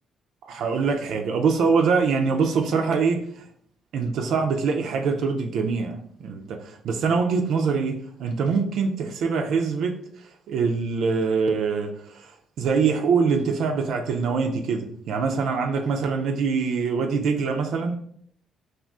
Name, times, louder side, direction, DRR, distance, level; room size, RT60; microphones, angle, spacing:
voice 1, 0.4-3.5 3.9-18.0, right 5 dB, 75° right, 0.3 m, -24 dB
2.4 x 2.3 x 3.6 m
cardioid pair, 90°, 0 cm